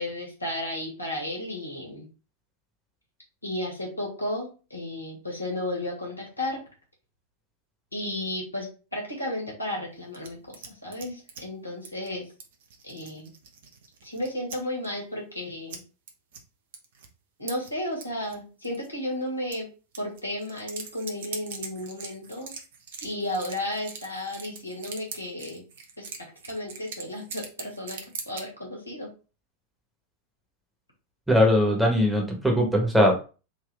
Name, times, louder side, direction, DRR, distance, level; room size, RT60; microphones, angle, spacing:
voice 1, 0.0-2.1 3.4-6.6 7.9-8.7 8.9-12.2 12.8-13.3 14.0-15.8 17.4-19.7 20.0-22.5 23.0-25.6 26.0-26.1 26.5-28.0 28.2-29.1, left 1 dB, 85° left, -2 dB, 1.7 m, -33 dB
sound 1, 10.1-11.4 11.9-12.1 12.4-14.6 14.8-14.9 15.7-15.8 16.1-16.4 16.7-17.1 17.5-18.4 18.6-18.9 19.5-19.6 19.9-28.4, right 5 dB, 55° right, 0.9 m, -41 dB
voice 2, 31.3-33.2, left 1 dB, ahead, 0 dB, 1.2 m, -20 dB
3.9 x 2.7 x 3.4 m, 0.34 s
figure-of-eight pair, 90°, 0 cm